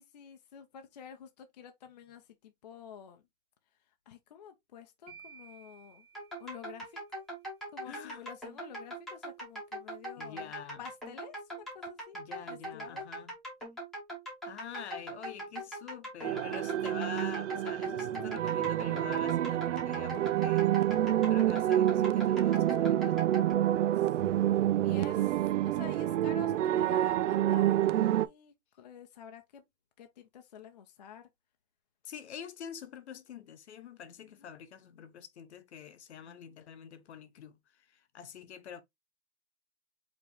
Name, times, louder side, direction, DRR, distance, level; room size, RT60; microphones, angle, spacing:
voice 1, 0.0-3.2 4.1-6.1 6.4-7.0 7.7-10.5 10.8-12.2 12.5-13.1 18.2-18.4 23.9-29.6 30.0-31.3 34.4-34.5, left 8 dB, 35° left, 0.5 m, -50 dB
sound 1, 5.1-7.2, right 7 dB, 35° right, 1.1 m, -55 dB
sound 2, 6.1-23.5, right 1 dB, ahead, 1.0 m, -42 dB
voice 2, 7.8-8.2 10.2-10.8 12.1-13.3 14.4-23.2 32.0-38.8, left 8 dB, 65° left, 1.0 m, -46 dB
sound 3, 16.2-28.3, right 12 dB, 85° right, 0.5 m, -28 dB
5.0 x 2.9 x 3.3 m
hypercardioid pair, 180°, 36 cm